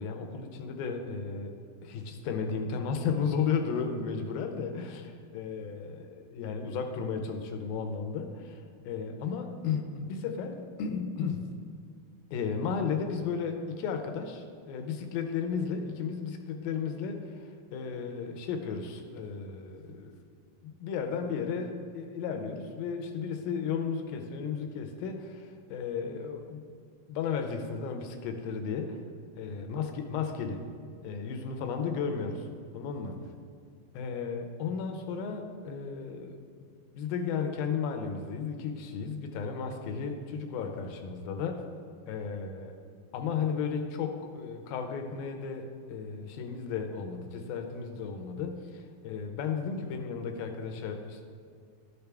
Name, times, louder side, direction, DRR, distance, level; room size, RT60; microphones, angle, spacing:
voice 1, 0.0-1.5 1.8-11.5 12.3-20.1 20.6-26.6 27.1-29.0 29.4-30.6 31.0-32.5 32.7-33.2 33.9-36.4 36.9-41.7 42.1-42.7 43.1-51.3, left 6 dB, 80° left, 5 dB, 2.4 m, -34 dB
13.0 x 6.9 x 3.4 m, 2.2 s
omnidirectional pair, 4.3 m